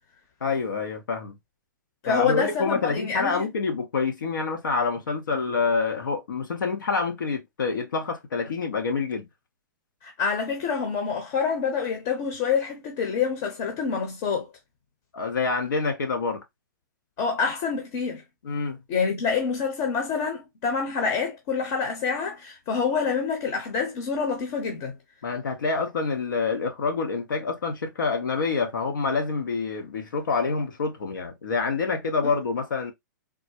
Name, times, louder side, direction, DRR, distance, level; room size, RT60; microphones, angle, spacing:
voice 1, 0.4-1.4 2.0-9.3 15.1-16.4 18.4-18.8 25.2-32.9, left 4 dB, 80° left, 1.0 m, -27 dB
voice 2, 2.0-3.5 10.0-14.5 17.2-18.2 18.9-24.9 32.2-32.4, left 6 dB, 45° left, 1.1 m, -27 dB
3.7 x 2.1 x 2.9 m
hypercardioid pair, 120°, 10 cm